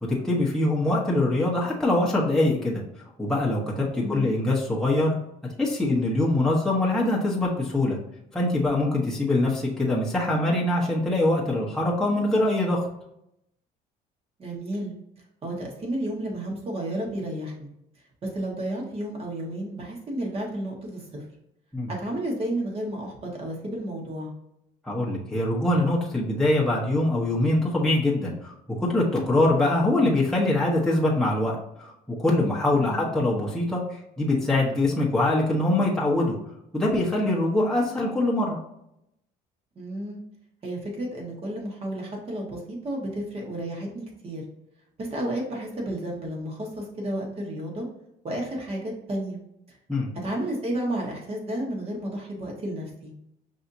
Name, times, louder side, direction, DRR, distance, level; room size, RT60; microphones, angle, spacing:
voice 1, 0.0-2.8 3.2-5.1 5.6-8.0 8.3-12.8 21.7-21.9 24.8-28.5 28.9-33.8 34.2-36.3 36.7-38.6 49.9-50.1, left 2 dB, 5° left, -5 dB, 1.0 m, -23 dB
voice 2, 4.0-4.5 14.4-14.9 15.4-17.7 18.2-21.2 21.9-24.3 32.7-33.1 39.7-40.2 40.6-44.4 45.0-47.9 48.2-49.4 49.7-49.8 50.2-53.1, right 1 dB, 35° right, -1 dB, 1.5 m, -32 dB
5.7 x 2.7 x 2.7 m, 0.80 s
cardioid pair, 110°, 17 cm